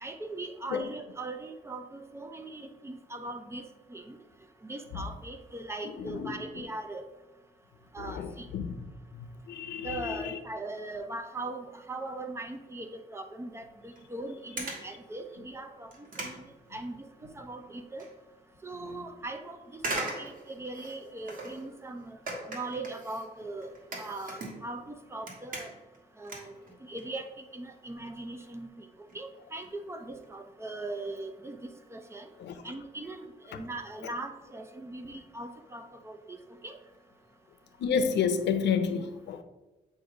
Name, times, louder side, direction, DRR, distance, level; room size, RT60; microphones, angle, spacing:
voice 1, 0.0-3.6 3.9-4.2 4.6-7.1 7.9-8.5 9.8-15.9 16.2-17.1 17.3-18.1 18.6-22.2 22.5-25.7 26.2-26.5 26.8-28.9 29.1-32.3 32.6-36.4 36.6-36.8, right 2 dB, 15° right, 0.4 m, -40 dB
voice 2, 6.0-6.3 8.0-8.8 9.5-10.4 18.8-18.9 32.4-32.6 33.5-33.6 37.8-39.4, left 6 dB, 90° left, 0.6 m, -30 dB
sound 1, 13.9-14.1 14.6-14.9 15.4-15.5 15.9-17.3 17.6-18.1 18.5-18.6 19.8-21.7 22.3-24.9 25.1-26.0 26.2-27.2 27.5-27.7 28.4-28.5 28.8-28.9 29.1-29.2 29.4-29.7 30.1-30.2 30.5-30.6, right 2 dB, 55° right, 1.3 m, -40 dB
7.7 x 2.6 x 4.8 m
wide cardioid pair, 175°, 17 cm